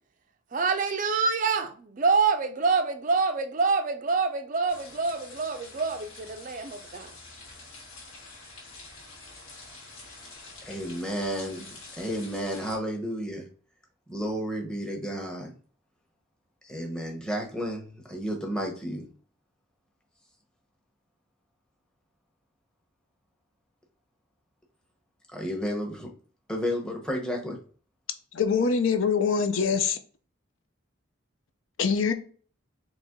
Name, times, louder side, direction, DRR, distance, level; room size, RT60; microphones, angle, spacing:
voice 1, 0.5-7.1, right 4 dB, 40° right, 0.4 m, -26 dB
sound 1, 4.7-12.8, left 3 dB, 90° left, 1.7 m, -47 dB
voice 2, 10.6-13.5 14.1-15.5 16.6-19.1 25.3-26.1 26.5-27.6, equal, 5° left, 0.8 m, -32 dB
voice 3, 28.3-30.0 31.8-32.1, left 5 dB, 70° left, 0.5 m, -24 dB
4.1 x 3.0 x 3.6 m
head